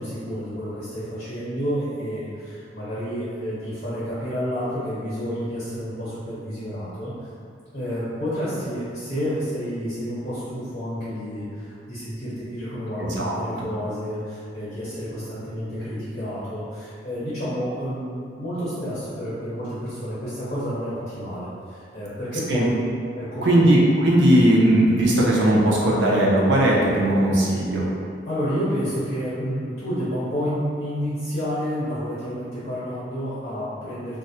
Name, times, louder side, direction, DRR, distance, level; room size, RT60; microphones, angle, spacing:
voice 1, 0.0-7.3 7.7-22.7 23.1-23.6 28.3-34.2, equal, 45° left, -13 dB, 0.9 m, -30 dB
voice 2, 12.9-13.8 22.5-22.7 23.4-27.9, right 1 dB, 90° right, -4 dB, 0.5 m, -18 dB
2.2 x 2.0 x 2.7 m, 2.3 s
head